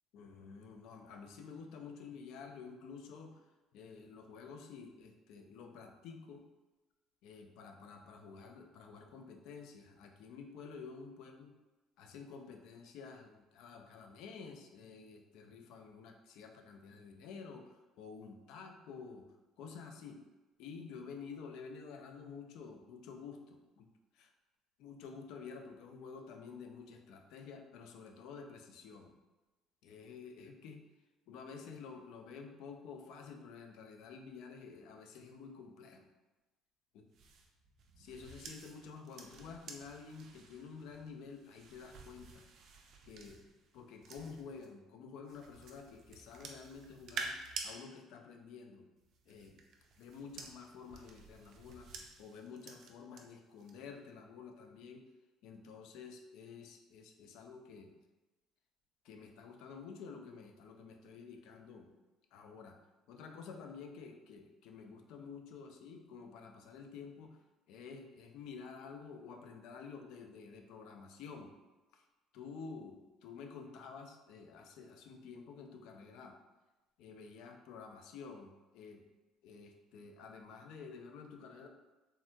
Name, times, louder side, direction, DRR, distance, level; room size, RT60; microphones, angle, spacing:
voice 1, 0.1-3.4 3.7-6.4 7.2-11.5 12.0-19.3 19.6-20.2 20.6-23.9 24.1-24.3 24.8-29.1 29.8-30.8 31.3-36.0 36.9-37.0 38.0-42.5 43.1-43.4 43.7-47.4 47.6-48.9 49.3-49.6 50.0-51.9 52.2-55.0 55.4-57.9 59.0-61.9 62.3-62.8 63.1-67.4 67.7-71.5 71.9-72.0 72.3-76.4 77.0-79.0 79.4-81.7, left 5 dB, 75° left, 4 dB, 0.4 m, -50 dB
sound 1, 37.1-44.7 45.3-47.7 49.0-53.2 53.6-53.9, right 4 dB, 55° right, 0.4 m, -50 dB
3.4 x 2.1 x 2.5 m, 1.1 s
cardioid pair, 120°, 0 cm